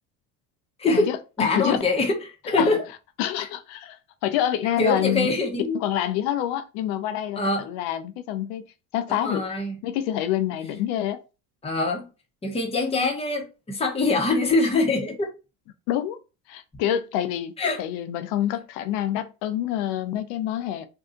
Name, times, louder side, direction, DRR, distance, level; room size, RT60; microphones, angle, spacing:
voice 1, 0.9-1.8 2.6-2.8 3.2-5.3 5.7-8.6 8.9-9.4 9.8-11.2 15.9-16.2 16.5-17.5 17.8-20.9, left 11 dB, 80° left, 0.7 m, -27 dB
voice 2, 1.4-2.2 2.4-2.8 4.8-5.8 7.4-7.7 9.1-9.8 11.6-12.1 12.4-15.3 17.6-17.8, left 2 dB, 15° left, 0.9 m, -23 dB
2.7 x 2.2 x 3.7 m
supercardioid pair, 110°, 40 cm